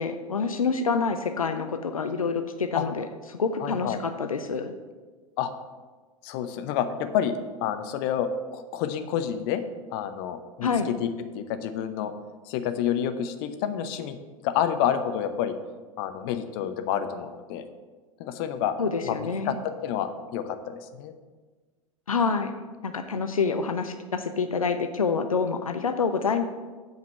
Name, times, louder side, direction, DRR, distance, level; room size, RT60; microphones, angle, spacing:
voice 1, 0.0-4.7 10.6-10.9 18.8-19.6 22.1-22.5 22.8-26.4, left 5 dB, 80° left, 8 dB, 0.6 m, -27 dB
voice 2, 3.6-4.0 5.4-5.5 6.2-9.6 9.9-11.1 11.3-12.1 12.5-14.2 14.4-15.5 16.0-17.6 18.2-18.7 19.0-19.5 19.8-21.1, left 9 dB, 45° left, 9 dB, 0.8 m, -29 dB
8.0 x 5.2 x 7.4 m, 1.3 s
figure-of-eight pair, 95°, 18 cm